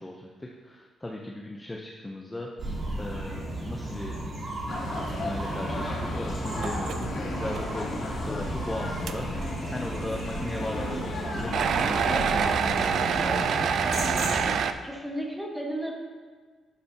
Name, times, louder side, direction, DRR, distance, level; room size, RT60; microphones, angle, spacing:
voice 1, 0.0-2.5 3.0-4.2 4.9-13.8, left 1 dB, 10° left, -1 dB, 0.6 m, -37 dB
sound 1, 2.6-14.4, right 1 dB, 30° right, 2.3 m, -35 dB
sound 2, 4.7-14.6, left 1 dB, 65° left, 2.3 m, -35 dB
sound 3, 6.6-7.1 7.5-7.6 8.3-8.4 9.1-9.2 11.5-14.7, right 7 dB, 60° right, 0.4 m, -26 dB
voice 2, 14.8-15.9, right 1 dB, 5° right, 0 dB, 1.2 m, -33 dB
11.5 x 7.2 x 2.8 m, 1.5 s
cardioid pair, 150°, 0 cm